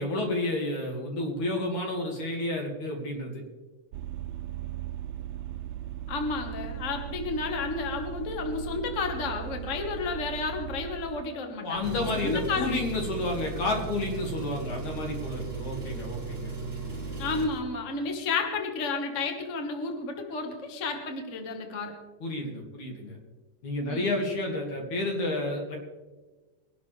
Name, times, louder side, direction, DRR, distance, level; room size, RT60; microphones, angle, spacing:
voice 1, 0.0-3.4 11.6-16.5 22.2-23.2 23.6-25.8, left 2 dB, 75° left, 1 dB, 3.7 m, -31 dB
Vehicle, 3.9-11.3, right 11 dB, 85° right, 1.4 m, -38 dB
voice 2, 6.1-12.7 17.2-21.9 23.9-24.2, left 4 dB, 35° left, 3 dB, 1.5 m, -32 dB
Engine, 11.7-17.6, right 4 dB, 15° right, 1.8 m, -36 dB
22.5 x 11.5 x 3.4 m, 1.3 s
omnidirectional pair, 3.4 m